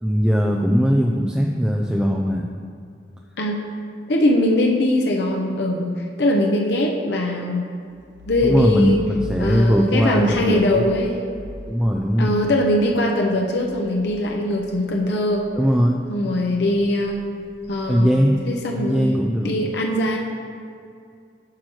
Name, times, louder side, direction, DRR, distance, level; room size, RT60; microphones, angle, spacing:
voice 1, 0.0-2.5 8.4-10.9 11.7-12.4 15.6-16.0 17.9-18.4 18.7-19.6, equal, 5° right, -1 dB, 0.3 m, -19 dB
voice 2, 4.1-7.6 8.3-9.0 9.4-11.3 12.2-15.5 16.1-17.2 17.7-18.2 18.5-19.2 19.4-20.2, left 1 dB, 70° left, 0 dB, 0.7 m, -21 dB
sound 1, 7.7-16.0 16.3-18.9, left 1 dB, 90° right, 0.8 m, -40 dB
8.5 x 3.0 x 6.2 m, 2.4 s
head